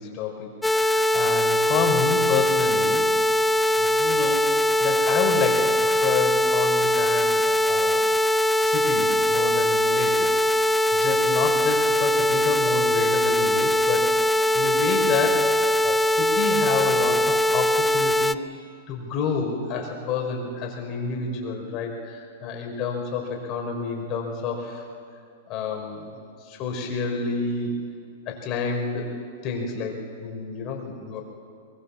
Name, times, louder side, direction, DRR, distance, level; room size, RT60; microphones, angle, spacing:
voice 1, 0.0-3.0 3.7-8.1 8.6-15.5 15.8-18.6 18.9-24.8 25.5-26.2 26.5-27.7 28.3-29.1 29.4-31.2, left 5 dB, 40° left, 2 dB, 5.0 m, -29 dB
sound 1, 0.6-18.4, left 1 dB, 5° left, 0.5 m, -21 dB
22.0 x 22.0 x 7.2 m, 2.4 s
hypercardioid pair, 115°, 0 cm